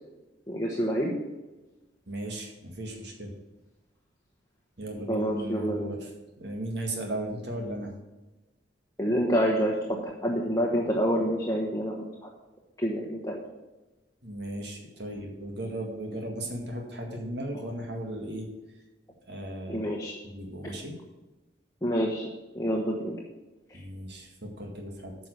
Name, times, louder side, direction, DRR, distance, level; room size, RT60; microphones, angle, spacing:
voice 1, 0.5-1.1 5.1-5.9 9.0-9.7 10.2-12.3 12.8-13.4 19.7-20.1 21.8-22.3 22.5-23.1 23.7-23.8, equal, 15° left, -2 dB, 1.2 m, -27 dB
voice 2, 2.1-3.3 4.8-6.1 6.4-7.9 14.2-18.5 19.3-19.9 20.2-20.9 23.7-25.2, right 1 dB, 60° right, 1 dB, 2.0 m, -36 dB
9.3 x 5.7 x 6.6 m, 1.1 s
head